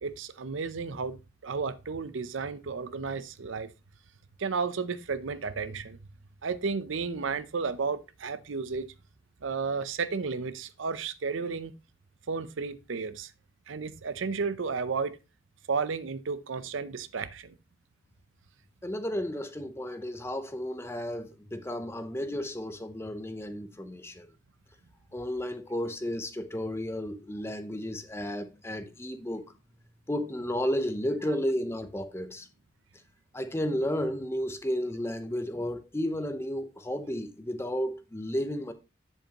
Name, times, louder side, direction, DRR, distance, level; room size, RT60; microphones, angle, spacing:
voice 1, 0.0-1.2 1.4-3.7 4.4-6.0 6.4-8.9 9.4-11.7 12.3-13.3 13.7-15.2 15.7-17.5, right 5 dB, 80° right, 0.6 m, -33 dB
voice 2, 18.8-24.3 25.1-29.5 30.1-32.5 33.3-38.7, equal, 15° left, 0.7 m, -33 dB
7.8 x 7.3 x 2.9 m
head